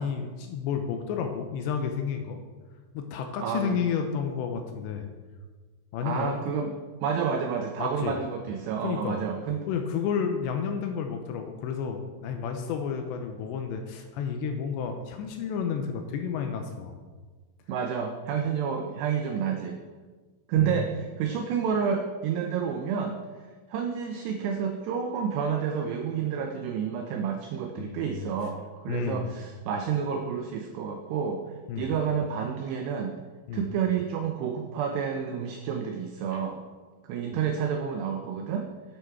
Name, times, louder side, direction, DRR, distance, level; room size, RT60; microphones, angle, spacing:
voice 1, 0.0-2.4 2.9-5.1 5.9-6.4 7.8-8.2 8.8-9.2 9.7-17.0 20.6-20.9 27.8-28.3 28.9-29.3 31.7-31.9 33.5-33.7 36.3-36.4, left 6 dB, 80° left, 5 dB, 2.7 m, -31 dB
voice 2, 3.4-3.8 6.0-6.7 7.0-9.6 17.7-19.8 20.5-23.2 23.7-31.4 31.8-33.1 33.5-36.6 37.0-38.7, right 7 dB, 85° right, 4 dB, 2.4 m, -29 dB
10.0 x 8.8 x 4.6 m, 1.4 s
omnidirectional pair, 5.7 m